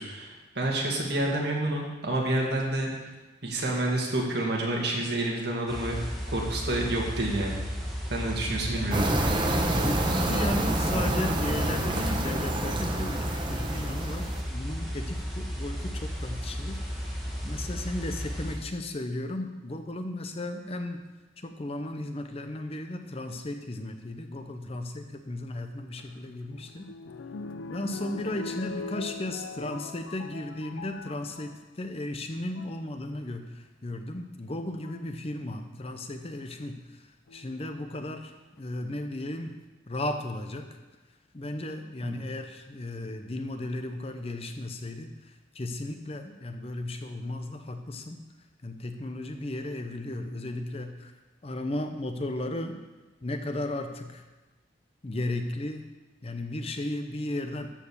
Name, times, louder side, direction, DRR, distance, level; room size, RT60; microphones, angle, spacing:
voice 1, 0.0-2.9 3.4-7.6 8.1-9.0 42.0-42.1, right 1 dB, 55° right, -1 dB, 2.1 m, -29 dB
sound 1, 5.7-18.6, equal, ahead, 1.8 m, -34 dB
sound 2, 8.9-14.4, right 1 dB, 25° right, 0.9 m, -28 dB
voice 2, 9.8-17.2 17.4-21.0 21.4-26.9 27.7-39.6 39.9-40.7 41.3-48.2 48.6-51.1 51.4-52.9 53.2-54.2 55.0-55.9 56.2-57.7, left 1 dB, 30° left, 7 dB, 0.7 m, -35 dB
sound 3, 26.0-31.6 32.4-32.8 34.0-34.1 34.8-35.2 37.3-37.9 38.6-38.7 38.9-39.0, left 4 dB, 85° left, 0.5 m, -41 dB
13.0 x 4.8 x 6.9 m, 1.2 s
head